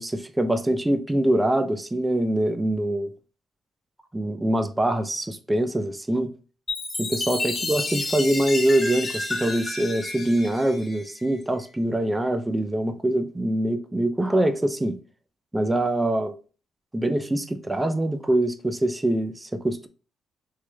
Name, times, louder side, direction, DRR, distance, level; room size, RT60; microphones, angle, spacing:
voice 1, 0.0-3.1 4.1-6.3 7.0-15.0 15.5-16.3 16.9-19.9, right 1 dB, 15° right, 0.4 m, -24 dB
Chime, 6.7-11.4, left 2 dB, 30° left, 0.7 m, -31 dB
3.1 x 2.9 x 2.2 m
cardioid pair, 90°, 0 cm